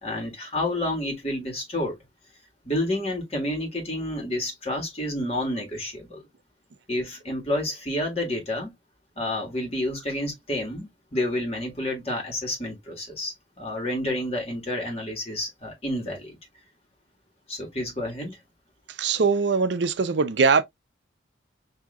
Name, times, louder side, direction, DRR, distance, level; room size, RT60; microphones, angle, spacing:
voice 1, 0.0-2.0 2.6-6.3 6.9-8.7 9.2-16.4 17.5-18.4, left 1 dB, 30° left, 1.8 m, -29 dB
voice 2, 18.9-20.6, right 5 dB, 65° right, 0.5 m, -22 dB
6.0 x 2.8 x 2.3 m
head